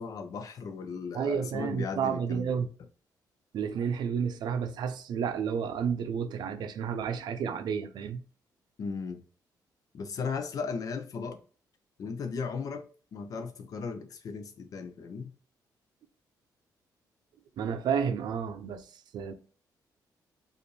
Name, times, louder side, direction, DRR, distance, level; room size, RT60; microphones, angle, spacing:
voice 1, 0.0-2.5 8.8-9.2 9.9-11.4 12.0-12.9 13.1-15.4, left 5 dB, 55° left, 0.7 m, -36 dB
voice 2, 1.1-2.7 3.5-8.2 17.6-19.3, right 7 dB, 75° right, 0.5 m, -31 dB
5.0 x 2.6 x 3.2 m
wide cardioid pair, 155°, 7 cm